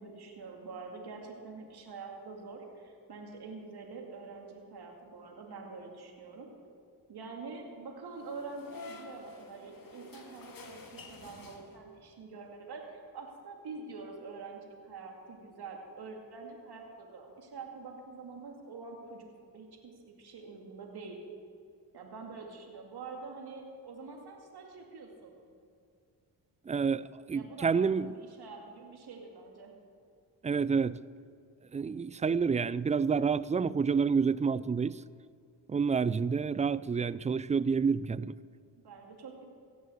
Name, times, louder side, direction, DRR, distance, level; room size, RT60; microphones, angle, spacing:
voice 1, 0.0-6.5 7.1-19.3 19.5-21.2 21.9-25.3 27.3-29.7 38.8-39.5, right 4 dB, 60° right, 1 dB, 2.5 m, -46 dB
sound 1, 8.2-12.1, left 3 dB, 50° left, 2.4 m, -49 dB
voice 2, 26.7-28.1 30.4-31.0 31.7-35.0 35.7-38.3, right 5 dB, 20° right, 19 dB, 0.3 m, -28 dB
17.0 x 6.2 x 7.9 m, 2.3 s
supercardioid pair, 50°, 44 cm